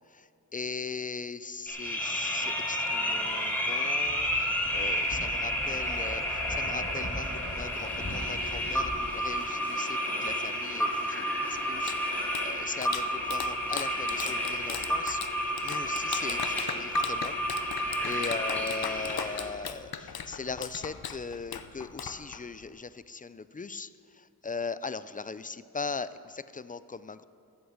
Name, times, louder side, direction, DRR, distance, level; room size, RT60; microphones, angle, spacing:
voice 1, 0.5-17.3 18.0-23.9 24.4-27.2, left 4 dB, 25° left, 15 dB, 0.4 m, -39 dB
sound 1, 1.7-19.5, equal, 5° left, 2.5 m, -31 dB
sound 2, 1.8-11.7, left 1 dB, 55° left, 2.2 m, -43 dB
Clapping, 11.5-22.7, left 7 dB, 75° left, 0.7 m, -39 dB
14.0 x 7.9 x 6.5 m, 2.4 s
wide cardioid pair, 55°, 37 cm